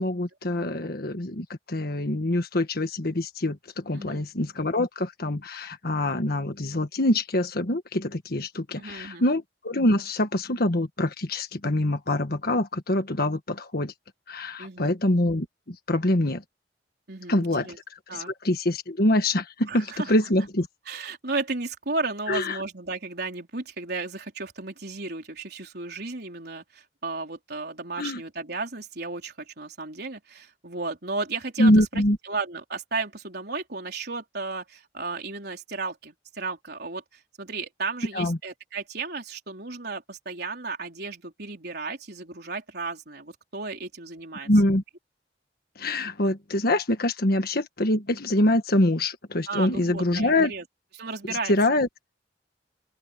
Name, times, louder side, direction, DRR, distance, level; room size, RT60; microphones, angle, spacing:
voice 1, 0.0-13.9 14.3-16.4 17.3-17.7 18.1-20.7 22.3-22.6 28.0-28.2 31.6-32.2 38.1-38.4 44.5-44.8 45.8-50.5 51.5-51.9, left 1 dB, 60° left, 1.5 m, -25 dB
voice 2, 3.9-4.2 8.8-9.2 14.6-14.9 17.1-17.8 18.1-18.3 19.7-20.1 20.9-44.5 49.5-50.6 51.0-51.5, right 3 dB, 60° right, 4.2 m, -34 dB
open air
head